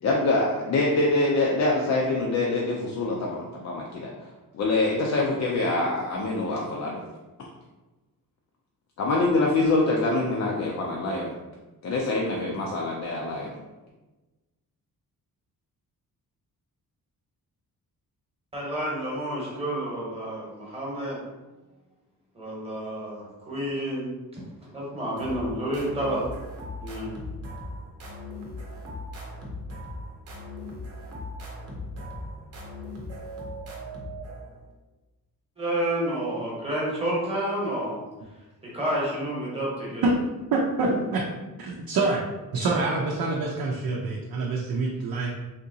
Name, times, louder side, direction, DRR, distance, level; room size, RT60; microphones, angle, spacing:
voice 1, 0.0-4.1 4.5-7.0 9.0-11.3 11.8-13.6, left 2 dB, 50° left, -2 dB, 0.4 m, -25 dB
voice 2, 18.5-21.2 22.3-24.1 24.7-26.3 26.8-27.1 35.6-38.0 38.7-40.0 40.8-41.0, right 1 dB, 15° right, -5 dB, 0.9 m, -29 dB
sound 1, 25.2-34.7, left 1 dB, 45° right, 0.7 m, -38 dB
voice 3, 40.5-41.2 41.6-42.2 42.5-45.3, right 3 dB, 80° right, -2 dB, 0.6 m, -26 dB
3.6 x 2.8 x 2.7 m, 1.1 s
wide cardioid pair, 180°, 36 cm